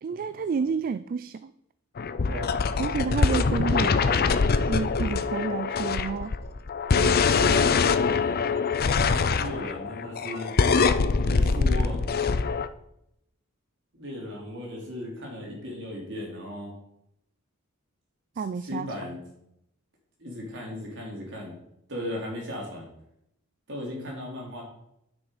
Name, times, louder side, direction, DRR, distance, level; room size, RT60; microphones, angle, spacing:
voice 1, 0.0-1.5 2.8-6.3 6.9-7.8 18.4-18.9, right 5 dB, 45° right, 13 dB, 0.3 m, -31 dB
sound 1, 2.0-12.7, left 5 dB, 45° left, 0.5 m, -24 dB
voice 2, 9.1-10.6 11.2-12.1 14.0-16.7 18.7-19.2 20.2-21.6 21.9-22.9 23.7-24.6, left 1 dB, 60° right, -2 dB, 3.6 m, -36 dB
9.7 x 6.2 x 5.0 m, 0.78 s
head